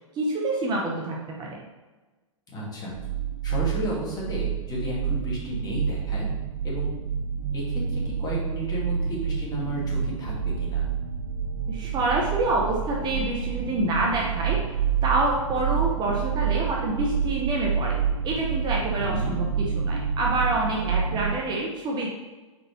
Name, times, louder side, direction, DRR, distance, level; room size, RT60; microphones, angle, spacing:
voice 1, 0.1-1.6 11.7-14.6 15.0-18.0 18.2-22.1, right 2 dB, 25° right, -2 dB, 0.9 m, -27 dB
voice 2, 2.5-2.9 3.4-6.3 6.6-6.9 7.5-10.8 19.0-19.4, equal, 20° left, -4 dB, 1.9 m, -32 dB
sound 1, 2.9-21.3, right 7 dB, 75° right, 0.5 m, -28 dB
4.8 x 4.4 x 4.4 m, 1.2 s
hypercardioid pair, 110°, 17 cm